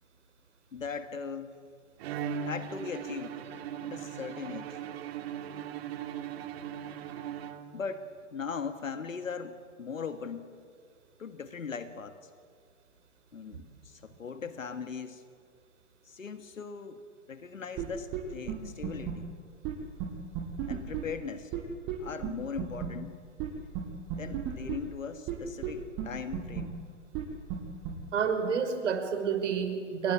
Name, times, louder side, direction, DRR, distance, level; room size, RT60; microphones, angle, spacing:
voice 1, 0.7-1.6 2.4-3.4 3.8-4.8 7.7-10.5 11.2-12.2 13.3-15.2 16.1-17.0 17.3-19.3 20.7-21.5 22.0-23.2 24.2-26.8, left 5 dB, 85° left, 9 dB, 1.9 m, -39 dB
Bowed string instrument, 2.0-8.0, right 8 dB, 50° right, 2.4 m, -39 dB
sound 1, 17.8-17.9 18.1-18.2 18.5-18.6 18.8-19.1 19.6-19.7 20.0-20.1 20.3-21.0 21.5-21.6 21.9-22.0 22.2-22.3 22.6-22.9 23.4-23.5 23.7-23.8 24.1-24.7 25.3-25.4 25.6-25.7 26.0-26.1 26.3-26.6 27.1-27.2 27.5-27.6 27.8-27.9, right 13 dB, 35° right, 7.0 m, -32 dB
voice 2, 28.1-30.1, right 6 dB, 65° right, 7 dB, 5.6 m, -29 dB
29.5 x 23.5 x 8.6 m, 2.1 s
hypercardioid pair, 120°, 38 cm